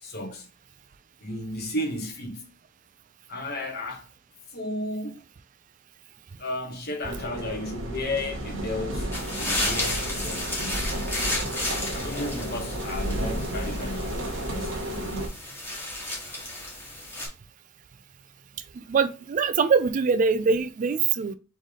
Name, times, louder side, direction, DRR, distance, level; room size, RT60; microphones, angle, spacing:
voice 1, 0.0-0.5 1.2-2.5 3.3-4.0 4.5-5.2 6.4-11.1 11.8-15.4, left 1 dB, 55° left, 1.3 m, -34 dB
sound 1, 7.0-15.3, right 1 dB, 75° right, 1.0 m, -32 dB
sound 2, 9.1-17.3, left 1 dB, 10° left, 1.7 m, -33 dB
voice 2, 18.7-21.3, right 5 dB, 40° right, 0.3 m, -23 dB
4.0 x 3.4 x 3.7 m
head